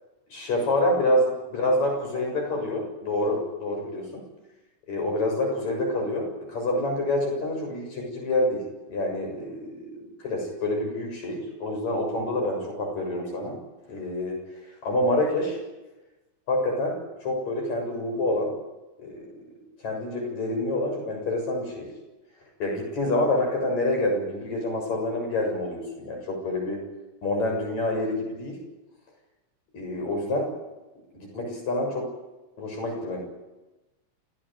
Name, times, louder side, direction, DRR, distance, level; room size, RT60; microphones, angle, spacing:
voice 1, 0.3-4.2 4.9-13.6 13.9-14.4 14.8-15.6 16.5-18.5 19.0-19.4 19.8-21.9 22.6-26.8 27.2-28.6 29.7-30.5 31.1-32.1 32.6-33.2, left 1 dB, 65° left, 2 dB, 8.3 m, -27 dB
29.0 x 16.5 x 9.2 m, 1.1 s
omnidirectional pair, 3.4 m